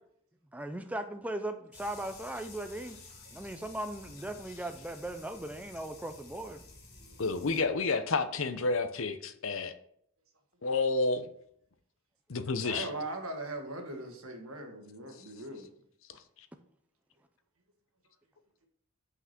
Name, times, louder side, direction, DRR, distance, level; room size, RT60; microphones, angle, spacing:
voice 1, 0.5-3.0 3.3-6.6, right 1 dB, 5° right, 6 dB, 0.4 m, -38 dB
sound 1, 1.7-7.6, left 3 dB, 50° left, 1.9 m, -52 dB
voice 2, 7.2-9.7 10.6-11.3 12.3-12.9, left 3 dB, 65° left, 11 dB, 0.7 m, -30 dB
voice 3, 12.6-15.7, right 2 dB, 80° right, 4 dB, 1.7 m, -40 dB
6.0 x 5.9 x 5.9 m, 0.68 s
head